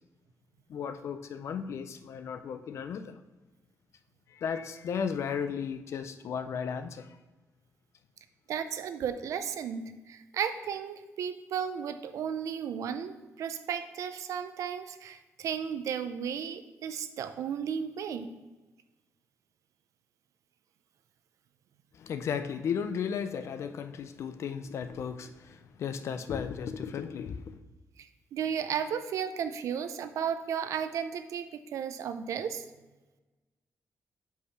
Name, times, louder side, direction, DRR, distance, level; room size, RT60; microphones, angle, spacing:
voice 1, 0.7-3.2 4.3-7.1 21.9-27.6, left 7 dB, 60° left, 10 dB, 0.5 m, -35 dB
voice 2, 8.5-18.3 28.0-32.7, right 8 dB, 80° right, 10 dB, 0.5 m, -34 dB
5.5 x 4.7 x 5.6 m, 1.1 s
wide cardioid pair, 160°, 5 cm